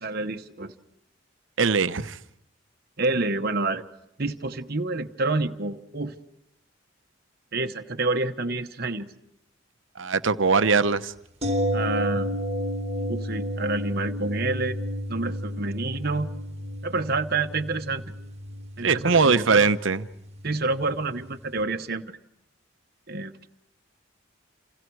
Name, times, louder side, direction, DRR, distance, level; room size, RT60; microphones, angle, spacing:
voice 1, 0.0-0.7 3.0-3.8 4.2-6.2 7.5-9.1 11.7-12.3 13.1-14.8 15.1-16.3 16.8-18.0 18.8-19.7 20.4-22.1 23.1-23.3, right 3 dB, 50° right, 1.1 m, -28 dB
voice 2, 1.6-2.2 10.0-11.1 18.8-20.0, right 4 dB, 70° right, 0.9 m, -21 dB
sound 1, 11.4-21.3 21.6-21.7, equal, 30° right, 1.8 m, -31 dB
29.0 x 28.5 x 4.7 m
head